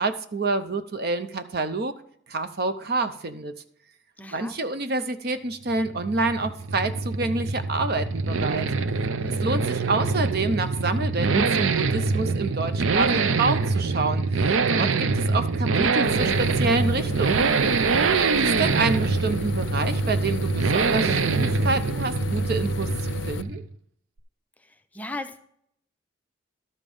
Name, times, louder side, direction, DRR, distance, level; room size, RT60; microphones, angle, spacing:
voice 1, 0.0-1.9 2.3-3.5 4.3-8.7 9.4-17.6 18.2-23.6, right 3 dB, 55° right, 10 dB, 0.7 m, -28 dB
voice 2, 4.2-4.6 9.2-9.6 18.0-18.5 24.6-25.5, left 1 dB, 10° left, 7 dB, 0.6 m, -39 dB
sound 1, 5.7-23.7, right 4 dB, 90° right, 0.5 m, -24 dB
sound 2, 16.0-23.4, left 5 dB, 75° left, 0.4 m, -35 dB
12.0 x 5.2 x 5.4 m, 0.67 s
head